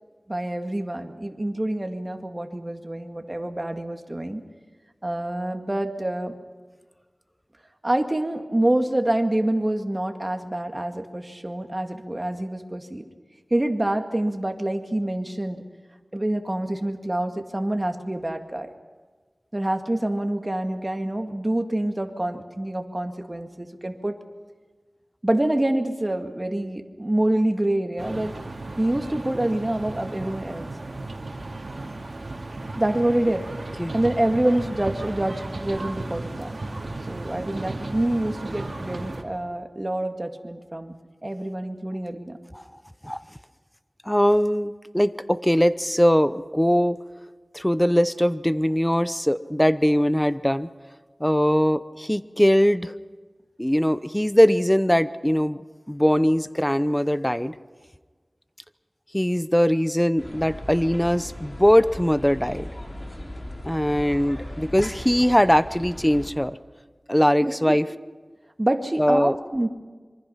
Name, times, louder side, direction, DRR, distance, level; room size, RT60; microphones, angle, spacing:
voice 1, 0.3-4.4 5.0-6.4 7.8-13.1 13.5-15.6 16.1-18.7 19.5-24.2 25.2-28.3 28.8-30.7 32.8-33.5 33.9-36.5 37.1-40.9 41.2-42.4 67.4-67.8 68.6-69.7, right 1 dB, 30° right, 5 dB, 2.0 m, -26 dB
sound 1, 28.0-39.2, right 2 dB, 70° right, 2.4 m, -35 dB
voice 2, 44.1-47.0 47.5-50.7 51.2-53.0 53.6-55.6 55.9-57.5 59.1-62.7 63.6-66.6 67.1-67.9 69.0-69.3, equal, 10° left, 14 dB, 0.8 m, -21 dB
sound 2, 60.2-66.3, left 1 dB, 40° left, 4.1 m, -38 dB
26.0 x 24.0 x 5.8 m, 1.4 s
wide cardioid pair, 50°, 0 cm